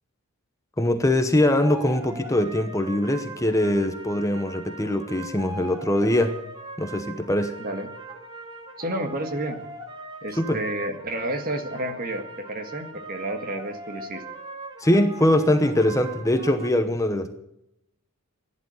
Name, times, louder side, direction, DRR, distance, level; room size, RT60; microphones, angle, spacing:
voice 1, 0.8-6.3 6.8-7.6 10.4-10.6 14.8-17.3, left 1 dB, 15° left, 8 dB, 0.9 m, -22 dB
sound 1, 1.6-16.7, right 2 dB, 20° right, 2.5 m, -40 dB
voice 2, 7.6-7.9 8.8-9.6 10.2-14.2, right 1 dB, 40° right, 6 dB, 1.8 m, -31 dB
15.5 x 11.0 x 8.2 m, 0.82 s
head